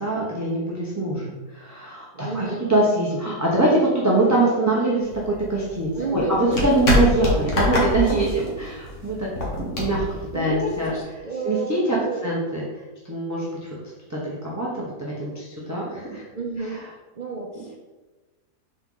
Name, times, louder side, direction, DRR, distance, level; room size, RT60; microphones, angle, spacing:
voice 1, 0.0-9.3 9.6-10.0 10.3-10.9 11.4-12.0 12.2-12.6 13.1-13.7 14.1-16.2 16.6-16.9 17.5-17.6, right 2 dB, 15° right, -6 dB, 0.9 m, -23 dB
voice 2, 2.1-2.7 6.0-6.4 8.0-8.4 10.3-12.2 16.3-16.8 17.2-17.8, right 3 dB, 50° right, -2 dB, 0.5 m, -31 dB
sound 1, 5.0-11.0, left 2 dB, 50° left, 1.8 m, -25 dB
6.5 x 4.4 x 3.9 m, 1.2 s
omnidirectional pair, 1.8 m